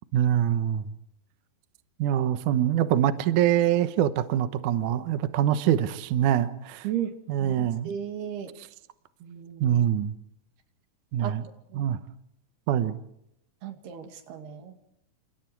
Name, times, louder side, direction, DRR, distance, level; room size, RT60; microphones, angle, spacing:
voice 1, 0.1-0.9 2.0-6.9 7.3-7.9 9.6-10.1 11.1-11.4 11.7-12.0 12.7-13.0, right 10 dB, 65° right, 11 dB, 2.2 m, -24 dB
voice 2, 6.8-8.6 9.2-9.8 11.2-11.4 11.7-11.9 13.6-14.9, right 10 dB, 85° right, 6 dB, 4.3 m, -35 dB
29.0 x 28.5 x 4.7 m, 0.80 s
omnidirectional pair, 4.4 m